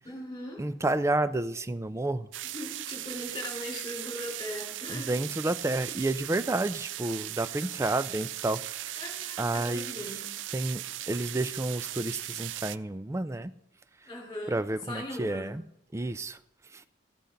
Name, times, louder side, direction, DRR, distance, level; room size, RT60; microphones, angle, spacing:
voice 1, 0.0-0.6 2.5-5.1 9.0-10.3 14.0-15.5, left 1 dB, 20° left, -2 dB, 5.0 m, -39 dB
voice 2, 0.6-2.3 4.9-8.8 9.4-10.0 10.5-13.5 14.5-15.6 15.9-16.4 16.7-16.9, right 2 dB, 15° right, 13 dB, 0.4 m, -30 dB
sound 1, 2.3-12.8, right 13 dB, 85° right, 0.4 m, -38 dB
14.5 x 8.0 x 5.1 m, 0.78 s
head